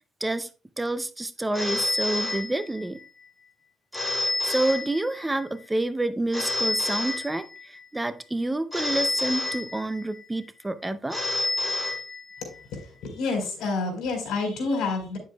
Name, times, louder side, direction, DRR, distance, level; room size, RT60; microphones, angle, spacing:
voice 1, 0.8-3.0 4.1-11.2, right 2 dB, 10° right, 0.5 m, -28 dB
Telephone, 1.5-3.0 3.9-5.4 6.3-7.8 8.7-10.2 11.1-12.6, left 2 dB, 5° left, 3.6 m, -29 dB
voice 2, 12.7-15.2, left 3 dB, 75° left, 4.0 m, -28 dB
9.4 x 7.5 x 2.3 m
cardioid pair, 115°, 0 cm